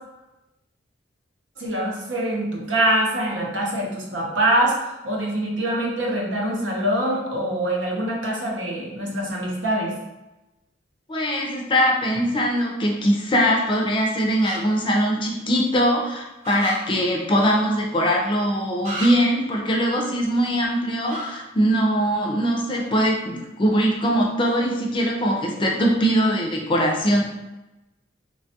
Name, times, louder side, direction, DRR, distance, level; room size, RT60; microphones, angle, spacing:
voice 1, 1.6-9.9, right 1 dB, 75° right, -2 dB, 0.7 m, -24 dB
voice 2, 11.1-27.2, equal, 25° left, -1 dB, 0.4 m, -21 dB
sound 1, 14.4-14.6 16.4-16.8 18.8-19.1 21.0-21.3, equal, 40° right, 0.8 m, -31 dB
3.1 x 2.2 x 2.7 m, 0.99 s
head